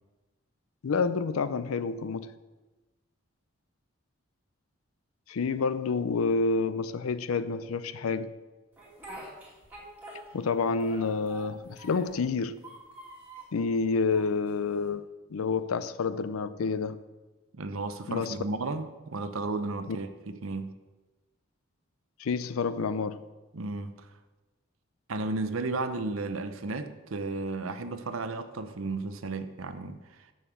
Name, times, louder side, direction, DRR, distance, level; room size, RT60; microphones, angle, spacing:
voice 1, 0.8-2.3 5.3-8.3 10.3-12.6 13.5-15.1 15.3-17.0 18.1-18.4 22.2-23.2, left 4 dB, 90° left, 0.5 m, -28 dB
Speech, 8.8-10.5 10.8-12.2 12.6-13.6 14.1-14.9, right 1 dB, 10° right, 1.9 m, -46 dB
voice 2, 17.6-20.7 23.5-24.1 25.1-30.0, right 3 dB, 80° right, 0.7 m, -33 dB
7.2 x 6.5 x 6.9 m
head